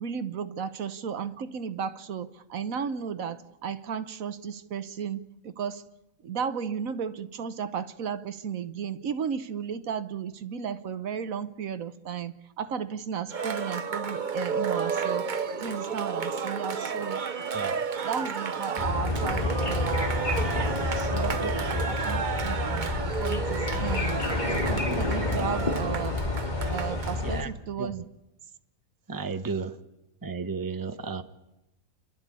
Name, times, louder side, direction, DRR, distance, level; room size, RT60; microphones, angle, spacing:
voice 1, 0.0-5.8 6.2-17.2 18.0-24.2 24.6-26.2 26.7-28.0, right 7 dB, 75° right, 12 dB, 1.4 m, -34 dB
Cheering, 13.3-27.2, right 6 dB, 40° right, 0.9 m, -32 dB
sound 1, 18.8-27.4, left 2 dB, 30° left, 2.6 m, -29 dB
voice 2, 21.3-21.9 23.7-23.9 24.4-24.6 27.2-28.0 29.1-29.8 30.2-31.2, right 4 dB, 15° right, 8 dB, 1.0 m, -35 dB
29.5 x 12.5 x 8.4 m, 0.94 s
omnidirectional pair, 1.4 m